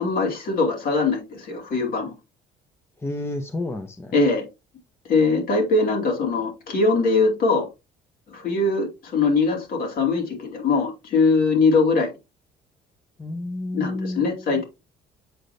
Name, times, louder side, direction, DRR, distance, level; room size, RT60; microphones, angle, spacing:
voice 1, 0.0-2.1 4.1-4.4 5.1-7.7 8.3-12.1 13.7-14.6, left 3 dB, 60° left, 2.5 m, -21 dB
voice 2, 3.0-4.1 13.2-14.6, left 2 dB, 15° left, 0.8 m, -31 dB
7.8 x 4.8 x 2.7 m
cardioid pair, 110°, 17 cm